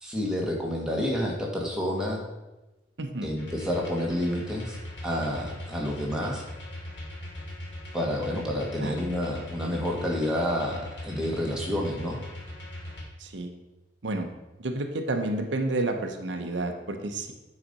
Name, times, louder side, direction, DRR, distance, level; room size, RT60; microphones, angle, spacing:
voice 1, 0.0-2.2 3.2-6.4 7.9-12.2, left 1 dB, 5° right, -3 dB, 1.4 m, -29 dB
voice 2, 3.0-3.3 8.8-9.0 13.2-13.5 14.0-14.3 14.6-17.3, right 2 dB, 85° right, 5 dB, 0.8 m, -30 dB
sound 1, 3.4-13.0, left 1 dB, 80° left, 2.4 m, -40 dB
8.9 x 4.2 x 5.3 m, 1.1 s
head